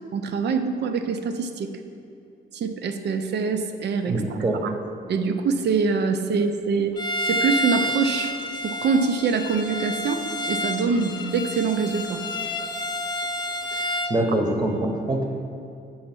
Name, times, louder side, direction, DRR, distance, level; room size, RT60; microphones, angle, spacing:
voice 1, 0.1-1.7 2.5-4.7 5.1-6.9 7.2-8.3 8.6-12.2, right 5 dB, 60° right, 7 dB, 0.6 m, -24 dB
voice 2, 4.1-4.6 13.7-15.3, right 1 dB, 20° right, 2 dB, 1.0 m, -25 dB
Bowed string instrument, 7.0-14.2, left 1 dB, 20° left, 0.4 m, -29 dB
5.6 x 4.3 x 6.0 m, 2.5 s
cardioid pair, 90°, 20 cm